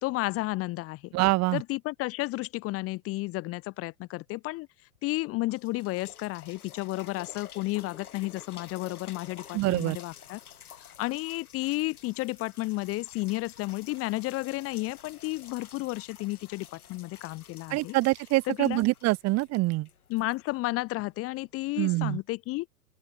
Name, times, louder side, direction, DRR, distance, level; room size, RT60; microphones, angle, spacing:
voice 1, 0.0-1.1 1.5-4.7 5.0-10.4 10.8-17.9 18.5-18.8 20.1-22.7, left 20 dB, 30° left, 1.3 m, -32 dB
voice 2, 1.1-1.6 9.5-10.0 17.7-19.9 21.8-22.2, right 21 dB, 35° right, 2.8 m, -25 dB
sound 1, 5.0-5.1 5.5-21.2 21.8-21.9, left 9 dB, 65° left, 6.4 m, -51 dB
open air
figure-of-eight pair, 100°, 47 cm